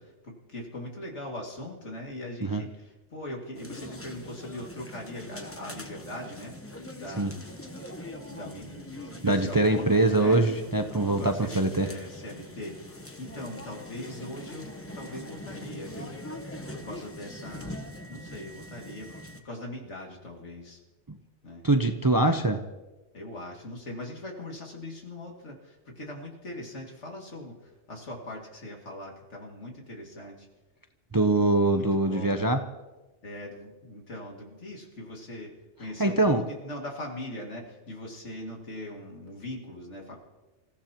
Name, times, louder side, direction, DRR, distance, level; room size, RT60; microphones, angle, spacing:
voice 1, 0.0-7.3 8.1-10.4 10.9-16.2 16.7-17.8 18.1-19.1 19.4-20.8 21.4-21.6 22.2-22.4 23.1-30.5 31.6-32.4 33.2-35.5 35.8-40.2, left 1 dB, 75° left, 0 dB, 2.7 m, -41 dB
sound 1, 3.5-19.4, left 1 dB, 15° left, 0.9 m, -42 dB
voice 2, 9.2-11.9 21.6-22.6 31.1-32.6 36.0-36.4, right 2 dB, 25° right, 6 dB, 0.5 m, -23 dB
27.5 x 15.0 x 3.0 m, 1.1 s
omnidirectional pair, 1.2 m